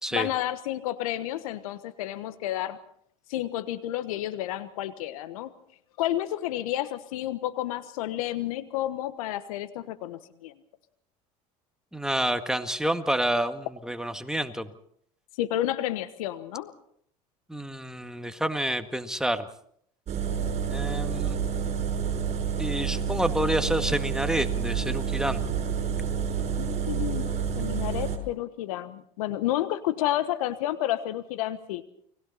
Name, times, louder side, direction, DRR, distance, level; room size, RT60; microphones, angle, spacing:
voice 1, 0.1-2.8 3.3-5.5 6.0-10.5 15.4-16.7 26.6-31.8, left 13 dB, 75° left, 13 dB, 1.4 m, -30 dB
voice 2, 11.9-14.7 17.5-19.5 20.6-21.4 22.6-25.4, right 1 dB, 5° right, 8 dB, 1.9 m, -28 dB
sound 1, 20.1-28.2, right 7 dB, 40° right, 5.8 m, -29 dB
29.5 x 20.5 x 4.2 m, 0.66 s
hypercardioid pair, 80°, 18 cm